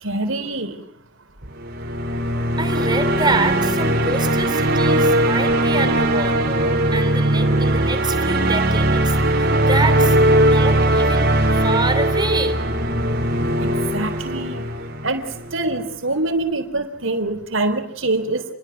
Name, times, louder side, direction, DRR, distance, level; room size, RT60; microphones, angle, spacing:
voice 1, 0.0-0.8 13.6-14.7 15.0-18.4, right 2 dB, 70° right, 7 dB, 4.0 m, -25 dB
sound 1, 1.5-15.7, right 1 dB, 50° right, 4.4 m, -19 dB
voice 2, 2.6-11.3 11.6-12.6, right 3 dB, 20° right, 9 dB, 3.4 m, -26 dB
29.5 x 22.0 x 6.1 m, 0.69 s
head